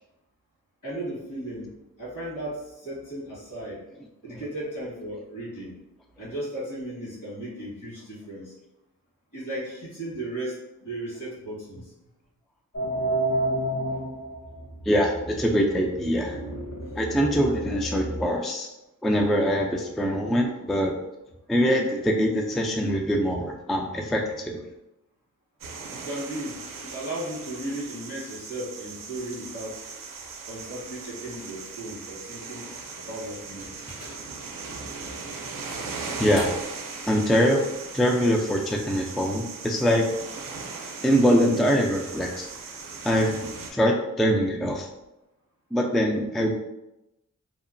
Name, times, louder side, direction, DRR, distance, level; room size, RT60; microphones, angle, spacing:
voice 1, 0.8-3.8 4.2-5.7 6.2-8.5 9.3-11.9 25.9-29.8 30.5-32.7 32.9-33.9, right 1 dB, 65° left, -6 dB, 1.5 m, -36 dB
sound 1, 12.7-18.2, right 1 dB, 50° left, 0.8 m, -31 dB
voice 2, 14.9-16.4 17.0-18.7 19.0-21.0 21.5-24.6 36.2-36.5 37.1-37.6 37.9-40.1 41.0-42.5 43.0-44.9 45.7-46.5, equal, ahead, 1 dB, 0.3 m, -23 dB
sound 2, 25.6-43.7, right 4 dB, 70° right, 0.5 m, -38 dB
sound 3, 32.7-34.4 35.0-35.1 35.7-36.9, left 1 dB, 85° left, 1.0 m, -44 dB
2.8 x 2.1 x 2.5 m, 0.92 s
cardioid pair, 45°, 34 cm